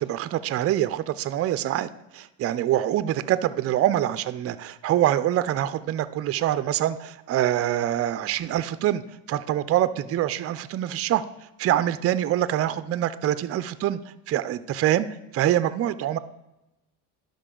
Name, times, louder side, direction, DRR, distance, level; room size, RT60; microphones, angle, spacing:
voice 1, 0.0-1.9 2.1-9.0 9.3-11.2 11.6-14.0 14.3-15.1 15.3-16.2, right 12 dB, 35° right, 13 dB, 0.4 m, -25 dB
11.5 x 5.1 x 3.8 m, 0.98 s
supercardioid pair, 95°, 43 cm